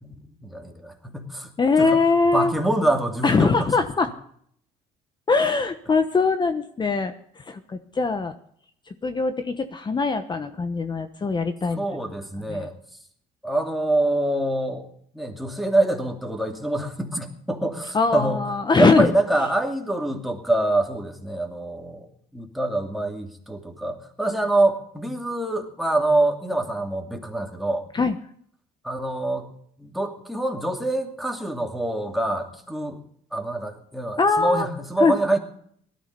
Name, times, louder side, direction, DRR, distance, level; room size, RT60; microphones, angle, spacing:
voice 1, 0.0-1.5 1.8-2.0 2.3-3.7 11.8-12.7 13.4-14.9 15.1-18.4 18.8-22.1 22.3-27.8 28.8-29.5 29.8-33.0 33.3-35.4, right 1 dB, ahead, 2 dB, 2.6 m, -25 dB
voice 2, 1.6-2.5 3.2-4.1 5.3-8.3 9.0-11.8 12.5-12.7 17.9-19.1 27.9-28.1 34.2-34.7 35.0-35.1, left 4 dB, 25° left, 9 dB, 1.1 m, -22 dB
18.0 x 13.0 x 5.3 m, 0.64 s
cardioid pair, 110°, 17 cm